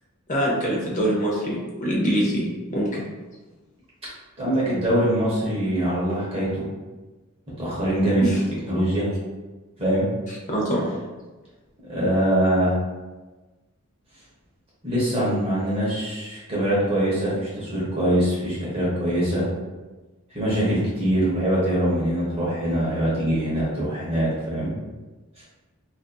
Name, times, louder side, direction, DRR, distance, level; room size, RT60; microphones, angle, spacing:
voice 1, 0.3-3.1 8.2-8.4 10.3-10.8, equal, 35° left, -4 dB, 0.7 m, -24 dB
voice 2, 4.4-6.6 7.6-8.2 8.7-9.1 9.8-10.1 11.8-12.7 14.8-19.4 20.3-24.7, right 1 dB, 25° right, -7 dB, 0.7 m, -23 dB
2.5 x 2.4 x 2.2 m, 1.2 s
head